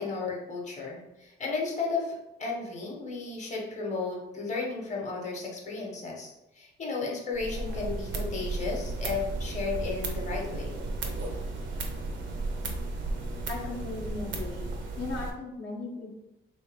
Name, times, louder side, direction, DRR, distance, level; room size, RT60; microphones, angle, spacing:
voice 1, 0.0-10.7, left 4 dB, 35° left, -1 dB, 1.0 m, -34 dB
sound 1, 7.3-15.3, right 2 dB, 70° right, 0.8 m, -34 dB
voice 2, 13.5-14.7 15.0-16.1, left 2 dB, 60° left, -3 dB, 0.9 m, -37 dB
3.2 x 2.8 x 3.5 m, 0.93 s
cardioid pair, 90°, 20 cm